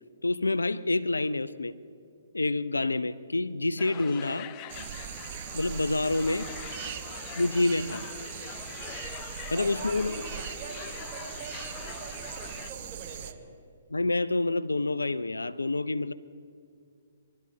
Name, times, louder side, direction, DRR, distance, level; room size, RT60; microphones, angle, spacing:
voice 1, 0.2-1.8 2.3-4.5 5.5-6.5 7.3-8.1 9.5-10.2 13.9-16.1, left 2 dB, 85° left, 0.5 m, -27 dB
sound 1, 3.8-12.7, left 12 dB, 30° left, 0.5 m, -44 dB
sound 2, 4.7-13.3, right 10 dB, 45° right, 0.8 m, -40 dB
voice 2, 9.5-13.5, right 4 dB, 20° right, 3.3 m, -45 dB
22.0 x 12.5 x 3.8 m
figure-of-eight pair, 130°, 0 cm